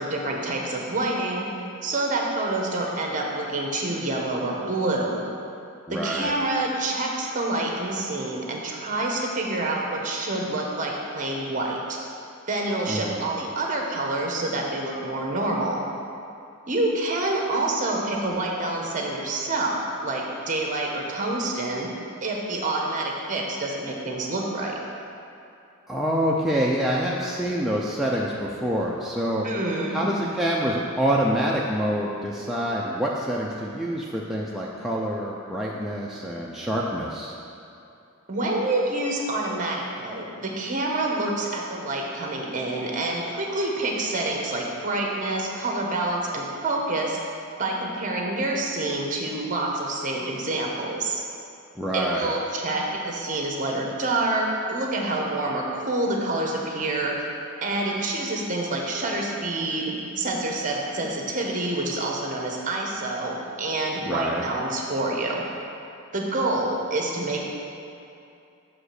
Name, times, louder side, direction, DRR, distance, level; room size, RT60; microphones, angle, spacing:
voice 1, 0.0-1.4 1.8-5.2 5.9-12.0 12.5-15.8 16.7-21.9 22.2-24.8 29.4-30.0 38.3-47.2 47.6-51.2 51.9-57.2 57.6-65.4 66.1-67.4, right 2 dB, 40° right, -1 dB, 1.0 m, -27 dB
voice 2, 5.9-6.3 12.9-13.3 25.9-29.5 29.9-37.3 51.8-52.3 64.1-64.4, equal, ahead, -5 dB, 0.4 m, -26 dB
5.9 x 5.0 x 6.4 m, 2.7 s
head